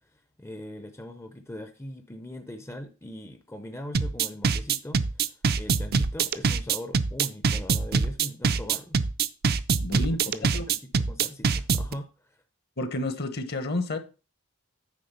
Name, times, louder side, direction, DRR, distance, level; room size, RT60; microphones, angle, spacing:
voice 1, 0.4-5.3 5.6-9.0 10.0-12.4, left 1 dB, 15° left, 0.6 m, -41 dB
sound 1, 3.9-11.9, right 5 dB, 50° right, 0.5 m, -24 dB
voice 2, 9.8-10.2 10.5-10.7 12.8-14.0, left 2 dB, 50° left, 1.1 m, -30 dB
9.5 x 3.6 x 6.8 m
head